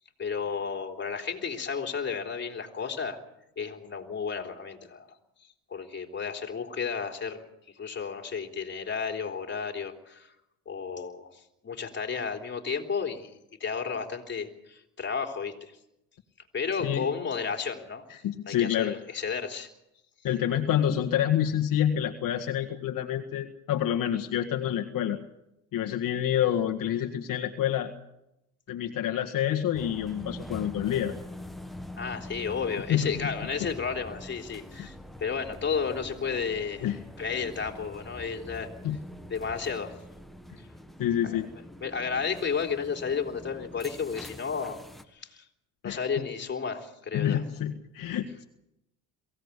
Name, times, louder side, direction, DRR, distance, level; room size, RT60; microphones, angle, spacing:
voice 1, 0.2-3.2 3.6-5.1 5.4-7.5 7.7-10.3 10.6-15.8 16.5-18.0 18.5-19.7 32.0-34.9 35.2-36.8 37.2-38.7 39.3-39.9 40.6-40.7 41.2-41.4 41.8-44.8 45.1-45.4 45.8-47.4, left 6 dB, 30° left, 3 dB, 3.4 m, -32 dB
voice 2, 18.1-18.9 20.2-25.2 25.7-27.9 28.7-31.1 32.9-33.1 34.8-34.9 36.8-37.0 38.8-39.0 41.0-41.4 45.8-46.0 47.1-48.4, left 10 dB, 55° left, 3 dB, 1.7 m, -28 dB
sound 1, 29.7-45.0, left 1 dB, ahead, 1.4 m, -44 dB
23.0 x 16.5 x 8.3 m, 0.87 s
cardioid pair, 120°, 38 cm